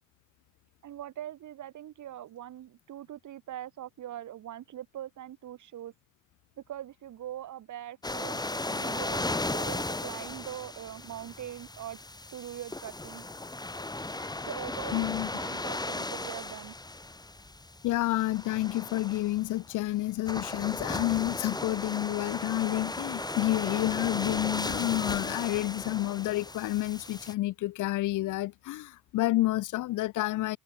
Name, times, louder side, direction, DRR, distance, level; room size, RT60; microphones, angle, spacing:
voice 1, 0.8-5.9 6.7-12.0 12.3-13.3 14.5-16.7, right 12 dB, 75° right, 7.1 m, -42 dB
sound 1, 8.0-27.3, left 2 dB, 15° left, 2.8 m, -36 dB
voice 2, 14.9-15.6 17.8-30.6, left 17 dB, 85° left, 0.9 m, -29 dB
cardioid pair, 90°, 30 cm